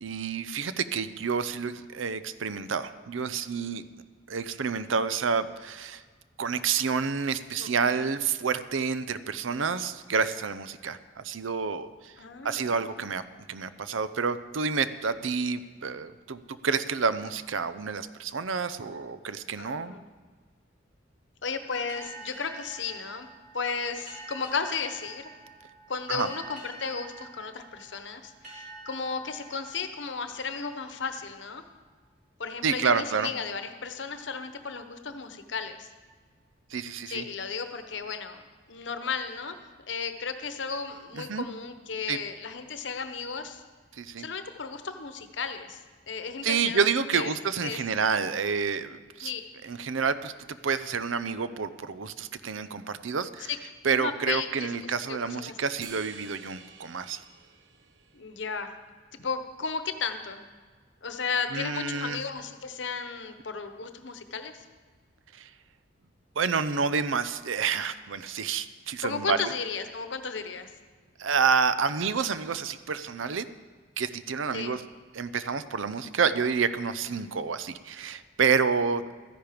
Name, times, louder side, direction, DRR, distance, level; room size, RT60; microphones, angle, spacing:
voice 1, 0.0-3.8 4.3-6.0 6.4-12.1 12.4-13.2 13.5-20.0 26.1-26.3 32.6-33.3 36.7-37.2 41.1-41.5 42.1-42.2 44.0-44.2 46.4-49.3 49.6-53.5 53.8-57.2 61.5-62.2 65.4-65.5 66.4-69.4 71.2-73.5 74.0-74.8 75.1-79.1, right 5 dB, 90° right, 13 dB, 0.6 m, -29 dB
voice 2, 7.6-8.1 12.2-12.8 19.6-20.0 21.4-23.3 23.5-25.3 25.9-31.6 32.4-35.9 37.1-38.4 38.7-39.6 39.9-43.6 44.2-45.8 46.1-46.9 47.1-47.4 47.6-48.0 49.2-49.4 53.5-53.6 53.9-55.6 58.1-58.8 59.1-60.4 61.0-64.6 69.0-70.7 74.5-74.8, left 5 dB, 70° left, 8 dB, 1.0 m, -34 dB
sound 1, 21.9-31.2, right 3 dB, 40° right, 3.1 m, -47 dB
sound 2, 55.8-58.5, right 5 dB, 75° right, 1.0 m, -49 dB
13.5 x 10.5 x 5.1 m, 1.5 s
head